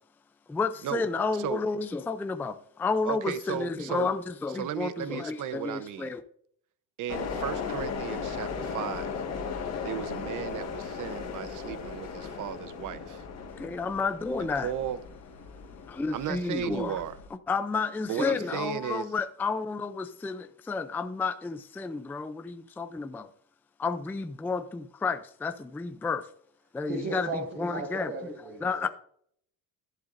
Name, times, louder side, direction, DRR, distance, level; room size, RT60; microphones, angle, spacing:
voice 1, 0.5-6.2 13.6-14.7 15.9-17.0 17.5-23.3 23.8-26.2 26.7-27.3 27.6-28.1 28.6-28.9, left 4 dB, 5° left, 0.4 m, -31 dB
voice 2, 3.0-4.1 4.5-6.1 7.0-9.1 9.8-13.2 14.6-15.0 16.1-17.2 18.1-19.1, right 10 dB, 55° right, 0.8 m, -35 dB
sound 1, 7.1-17.3, left 5 dB, 45° left, 1.7 m, -37 dB
voice 3, 26.8-28.9, right 2 dB, 30° right, 1.8 m, -36 dB
11.5 x 11.5 x 2.6 m
cardioid pair, 140°, 37 cm